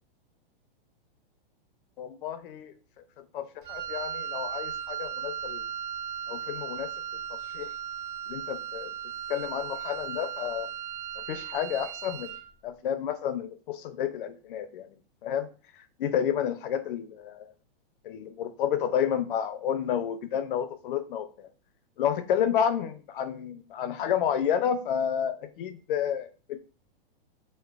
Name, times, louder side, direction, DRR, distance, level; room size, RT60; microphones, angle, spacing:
voice 1, 2.0-2.7 3.3-5.6 6.3-6.9 7.3-7.7 8.3-8.9 9.3-10.7 11.2-12.3 12.6-14.9 15.2-15.5 16.0-17.5 18.0-21.5 22.0-26.6, left 9 dB, 60° left, 0.5 m, -30 dB
Wind instrument woodwind instrument, 3.6-12.5, right 8 dB, 60° right, 0.4 m, -36 dB
2.9 x 2.0 x 2.4 m
hypercardioid pair, 155°, 29 cm